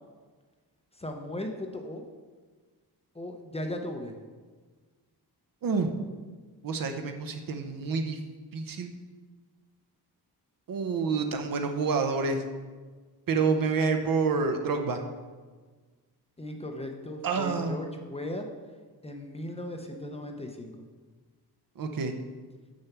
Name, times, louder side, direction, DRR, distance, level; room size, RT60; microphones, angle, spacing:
voice 1, 0.9-2.0 3.1-4.2 16.4-18.5 19.0-20.7, left 1 dB, 15° left, 3 dB, 0.6 m, -37 dB
voice 2, 6.6-8.2 8.5-8.9 10.7-12.4 13.3-15.0 17.2-17.8 21.8-22.1, right 4 dB, 55° right, 6 dB, 0.8 m, -28 dB
7.0 x 6.6 x 5.9 m, 1.4 s
wide cardioid pair, 170°, 39 cm